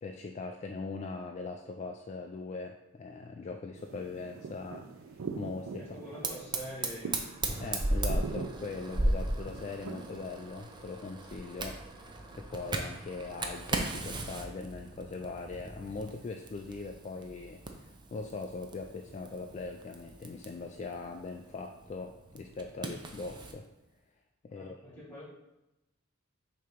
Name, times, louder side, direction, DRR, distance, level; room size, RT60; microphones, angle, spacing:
voice 1, 0.0-5.9 7.6-12.0 12.4-23.7 24.4-25.0, left 3 dB, 35° left, 3 dB, 0.3 m, -41 dB
sound 1, 3.7-10.8, right 4 dB, 75° right, 0.4 m, -43 dB
voice 2, 5.8-7.2 24.5-25.2, equal, 10° left, -6 dB, 2.3 m, -45 dB
Fire, 6.2-23.6, right 2 dB, 20° right, 0.5 m, -37 dB
6.6 x 2.9 x 5.0 m, 0.95 s
head